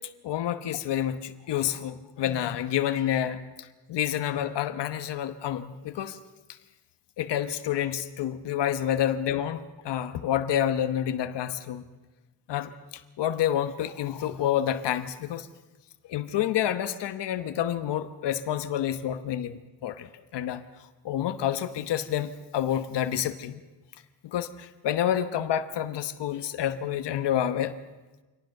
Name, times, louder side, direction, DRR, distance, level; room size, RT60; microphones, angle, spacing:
voice 1, 0.2-6.2 7.2-11.8 12.5-12.7 13.2-15.5 16.1-20.6 21.0-23.6 24.2-27.7, left 10 dB, 75° left, 10 dB, 1.1 m, -28 dB
25.5 x 18.5 x 6.6 m, 1.2 s
wide cardioid pair, 160°, 42 cm